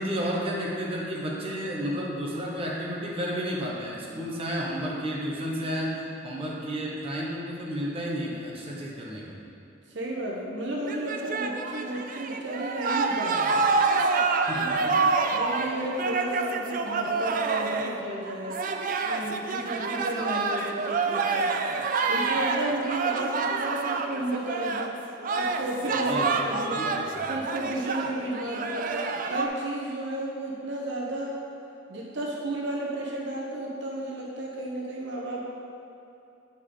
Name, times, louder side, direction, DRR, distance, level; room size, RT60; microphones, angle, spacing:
voice 1, 0.0-6.0 6.2-9.3 14.5-15.1 26.1-27.3, equal, 30° right, -4 dB, 1.1 m, -32 dB
voice 2, 9.9-13.6 14.5-14.9 15.3-18.6 19.0-21.6 22.1-25.0 25.4-26.8 27.3-28.9 29.3-31.4 31.9-35.4, right 1 dB, 70° right, -2 dB, 0.8 m, -33 dB
sound 1, 10.9-24.9 25.2-29.5, right 4 dB, 45° right, 0.4 m, -27 dB
9.0 x 5.0 x 3.8 m, 2.8 s
head